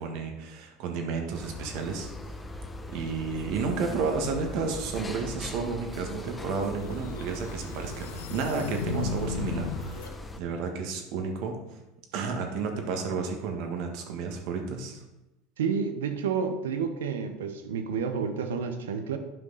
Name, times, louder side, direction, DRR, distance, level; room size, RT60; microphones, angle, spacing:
voice 1, 0.0-2.1 2.9-11.5 12.1-15.0, right 4 dB, 65° right, 4 dB, 1.5 m, -32 dB
sound 1, 1.3-10.4, equal, 15° left, 0.8 m, -40 dB
sound 2, 6.4-10.1, left 5 dB, 85° left, 0.7 m, -36 dB
voice 2, 15.6-19.2, right 6 dB, 85° right, 8 dB, 0.8 m, -30 dB
9.2 x 5.3 x 4.0 m, 0.96 s
hypercardioid pair, 90°, 0 cm